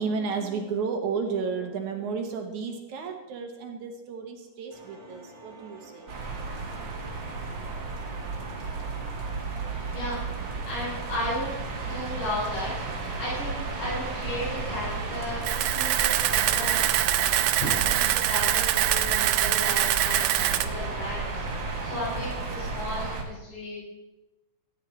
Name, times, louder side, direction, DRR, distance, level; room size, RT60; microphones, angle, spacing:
voice 1, 0.0-6.1, right 5 dB, 70° right, 4 dB, 2.2 m, -32 dB
sound 1, 4.7-22.7, right 1 dB, 10° right, 1.5 m, -47 dB
sound 2, 6.1-23.2, right 3 dB, 45° right, 1.8 m, -33 dB
voice 2, 10.7-12.7 13.2-15.4 15.7-16.8 17.6-23.8, left 1 dB, 70° left, -8 dB, 6.5 m, -34 dB
Camera, 15.4-20.7, right 13 dB, 85° right, 1.8 m, -24 dB
15.0 x 9.0 x 4.3 m, 1.0 s
omnidirectional pair, 4.0 m